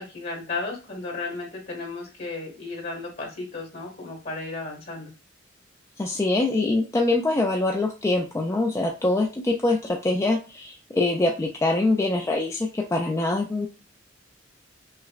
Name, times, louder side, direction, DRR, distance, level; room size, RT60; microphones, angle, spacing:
voice 1, 0.0-5.1, left 3 dB, 55° left, 0 dB, 1.5 m, -34 dB
voice 2, 6.0-13.7, left 2 dB, 15° left, 1 dB, 0.3 m, -24 dB
5.6 x 2.1 x 2.3 m, 0.32 s
head